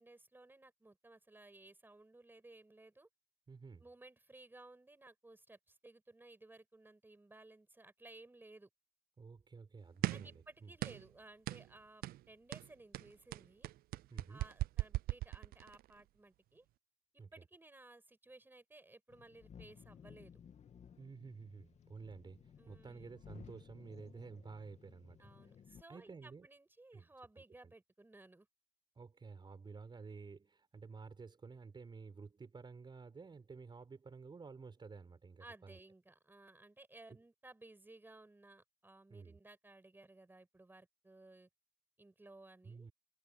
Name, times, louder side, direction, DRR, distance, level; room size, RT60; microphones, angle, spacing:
voice 1, 0.0-3.1 3.8-8.7 10.1-13.7 14.3-16.6 17.3-20.3 22.6-23.2 25.2-28.5 35.4-41.5 42.0-42.9, right 2 dB, 10° right, 5.9 m, -58 dB
voice 2, 3.5-3.8 9.2-10.7 14.1-14.4 17.2-17.4 21.0-25.3 25.7-26.5 26.9-27.1 27.4-27.7 28.9-35.8 37.1-37.2 39.1-39.4 42.6-42.9, right 4 dB, 25° right, 4.6 m, -52 dB
sound 1, 10.0-10.4 10.8-11.1 11.5-11.7 12.0-12.2 12.5-15.8, right 16 dB, 60° right, 0.4 m, -38 dB
sound 2, 19.1-25.8, left 7 dB, 40° left, 2.1 m, -58 dB
cardioid pair, 110°, 17 cm